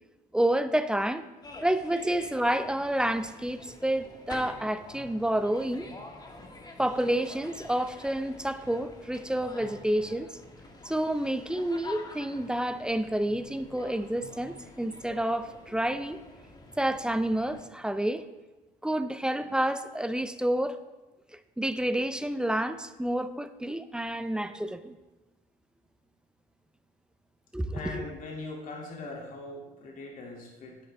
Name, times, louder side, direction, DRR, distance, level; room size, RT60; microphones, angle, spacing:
voice 1, 0.3-1.2 1.6-5.9 6.8-10.3 10.9-16.2 16.8-18.2 18.8-20.8 21.6-24.9 27.5-28.0, right 1 dB, 5° right, 11 dB, 0.5 m, -29 dB
sound 1, 1.4-17.6, left 2 dB, 25° left, 1.6 m, -47 dB
voice 2, 27.7-30.8, left 3 dB, 55° left, -1 dB, 2.6 m, -40 dB
10.5 x 10.0 x 3.5 m, 1.1 s
cardioid pair, 110°, 17 cm